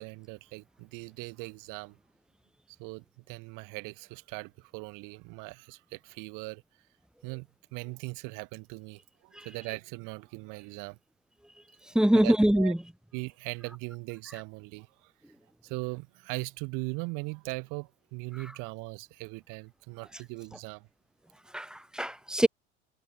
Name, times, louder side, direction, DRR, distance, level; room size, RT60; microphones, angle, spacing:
voice 1, 0.0-2.0 2.8-6.6 7.2-11.0 12.1-12.7 13.1-15.1 15.6-20.9 22.4-22.5, right 29 dB, 60° right, 2.7 m, -40 dB
voice 2, 11.9-12.8 21.5-22.5, equal, ahead, 1.3 m, -23 dB
figure-of-eight pair, 70°, 36 cm